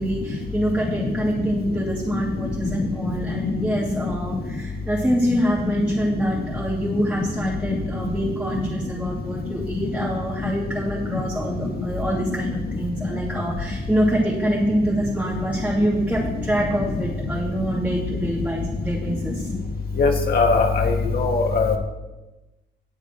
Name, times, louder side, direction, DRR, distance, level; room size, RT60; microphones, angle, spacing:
voice 1, 0.0-19.5, equal, 5° right, -6 dB, 2.6 m, -25 dB
voice 2, 20.0-21.7, left 4 dB, 50° left, 3 dB, 2.0 m, -20 dB
19.5 x 7.8 x 3.1 m, 1.1 s
cardioid pair, 90°, 20 cm